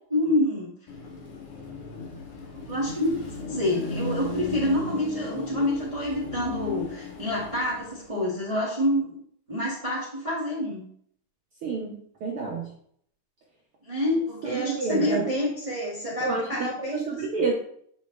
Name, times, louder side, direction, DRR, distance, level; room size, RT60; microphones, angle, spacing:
voice 1, 0.1-0.7 2.7-3.2 3.5-9.2 9.5-10.9 13.8-17.2, left 1 dB, 20° right, -6 dB, 0.8 m, -27 dB
Car passing by / Traffic noise roadway noise / Engine, 0.9-8.2, left 4 dB, 60° left, 1.6 m, -36 dB
voice 2, 11.6-12.7 14.4-15.3 16.2-17.5, right 4 dB, 85° right, -3 dB, 1.1 m, -29 dB
9.3 x 3.2 x 3.2 m, 0.64 s
omnidirectional pair, 3.7 m